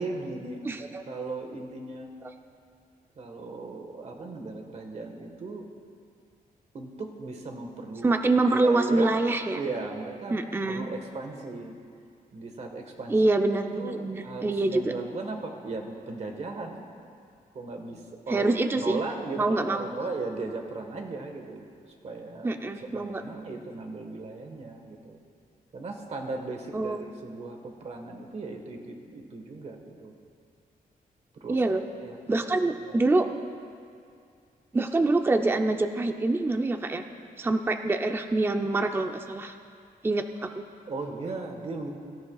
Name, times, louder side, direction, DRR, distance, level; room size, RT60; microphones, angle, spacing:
voice 1, 0.0-2.1 3.1-5.6 6.7-8.2 8.5-9.1 9.5-10.4 10.7-11.8 12.3-13.1 13.7-16.9 17.5-21.7 22.0-22.6 22.9-25.2 25.7-30.1 31.4-31.6 32.0-33.1 40.9-41.9, right 3 dB, 45° right, 3 dB, 1.4 m, -37 dB
voice 2, 0.6-1.0 8.0-9.6 10.3-10.9 13.1-14.9 18.3-19.0 19.4-19.9 22.4-23.2 26.7-27.1 31.5-31.8 32.3-33.3 34.7-37.0 37.4-39.5 40.0-40.6, right 2 dB, 15° right, 6 dB, 0.5 m, -25 dB
23.5 x 13.0 x 2.4 m, 2.3 s
wide cardioid pair, 155°, 16 cm